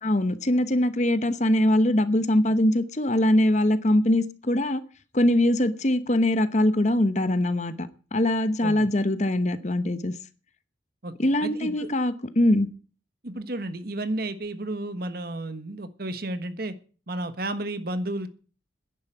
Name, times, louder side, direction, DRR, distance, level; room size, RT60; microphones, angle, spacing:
voice 1, 0.0-4.8 5.1-10.1 11.2-12.7, left 1 dB, 40° left, 1.0 m, -22 dB
voice 2, 11.0-11.9 13.2-16.7 17.1-18.3, right 1 dB, 55° right, 1.4 m, -32 dB
10.5 x 9.6 x 9.2 m
head